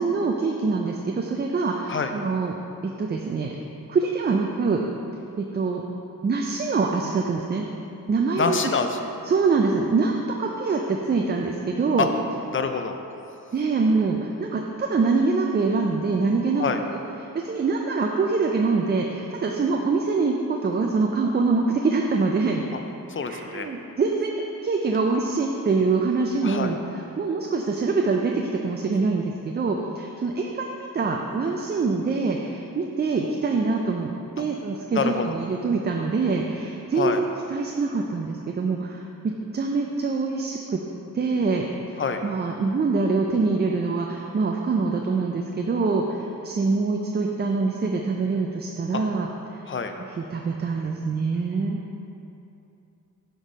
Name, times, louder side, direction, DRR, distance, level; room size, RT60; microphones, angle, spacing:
voice 1, 0.0-2.6 2.8-3.6 3.9-4.8 5.4-5.8 6.2-7.7 8.1-8.7 9.2-10.1 10.4-12.1 13.5-16.6 17.3-22.7 23.3-34.1 34.4-39.0 39.5-40.8 41.1-49.3 50.1-51.8, right 4 dB, 30° right, 1 dB, 0.4 m, -24 dB
voice 2, 8.4-9.0 12.0-12.1 12.5-12.9 16.6-16.8 23.1-23.7 26.4-26.7 34.9-35.2 37.0-37.2 42.0-42.2 48.9-49.0 49.7-49.9, left 5 dB, 35° left, 6 dB, 0.4 m, -26 dB
5.6 x 3.6 x 4.8 m, 2.8 s
cardioid pair, 65°, 35 cm